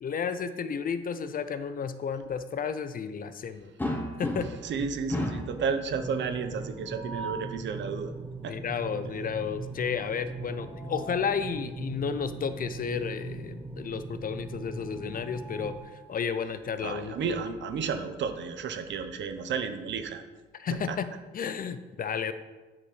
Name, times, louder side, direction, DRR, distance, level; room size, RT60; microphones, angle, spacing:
voice 1, 0.0-3.7 4.2-4.5 5.1-5.2 8.5-17.2 20.6-21.1 21.3-22.3, left 6 dB, 45° left, 12 dB, 0.6 m, -32 dB
sound 1, 3.8-4.7 5.1-5.6 6.8-7.6 10.2-11.3 12.7-12.9 13.2-13.3 14.9-16.1, left 1 dB, 10° left, 1.2 m, -36 dB
voice 2, 4.6-8.1 8.4-8.6 16.8-20.2 20.7-21.0, right 6 dB, 65° right, 8 dB, 0.9 m, -32 dB
sound 2, 5.9-15.8, right 3 dB, 15° right, 0.7 m, -40 dB
9.7 x 4.3 x 5.0 m, 1.2 s
cardioid pair, 90°, 20 cm